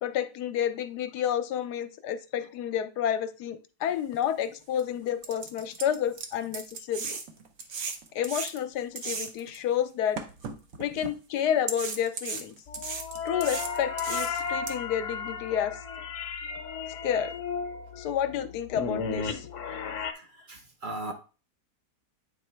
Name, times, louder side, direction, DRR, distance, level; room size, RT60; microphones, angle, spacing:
voice 1, 0.0-7.2 8.1-10.2 10.8-12.6 13.2-15.8 17.0-17.3 18.0-19.8, left 9 dB, 80° left, 10 dB, 1.2 m, -30 dB
sound 1, 4.2-4.3 4.8-4.9 5.2-9.6 10.2-11.1 11.7-14.7, right 5 dB, 60° right, 1.1 m, -36 dB
sound 2, 12.7-20.1, left 5 dB, 55° left, 1.0 m, -34 dB
voice 2, 20.2-21.1, right 2 dB, 40° right, 4 dB, 0.7 m, -38 dB
8.5 x 3.1 x 4.4 m, 0.34 s
omnidirectional pair, 1.7 m